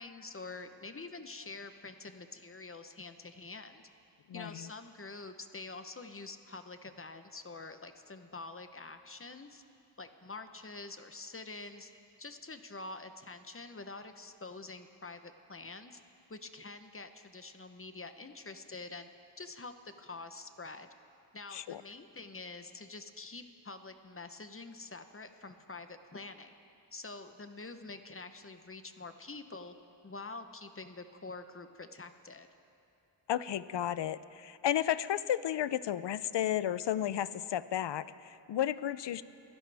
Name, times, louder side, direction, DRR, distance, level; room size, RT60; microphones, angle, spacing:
voice 1, 0.0-3.8 4.3-9.6 10.0-11.9 12.2-16.0 16.3-19.1 19.4-20.9 21.3-26.5 26.9-29.7 30.0-32.5, left 3 dB, 30° left, 8 dB, 0.9 m, -46 dB
voice 2, 4.3-4.7 21.5-21.8 33.3-39.2, left 11 dB, 65° left, 16 dB, 0.6 m, -33 dB
25.0 x 15.5 x 3.5 m, 2.6 s
cardioid pair, 65°, 46 cm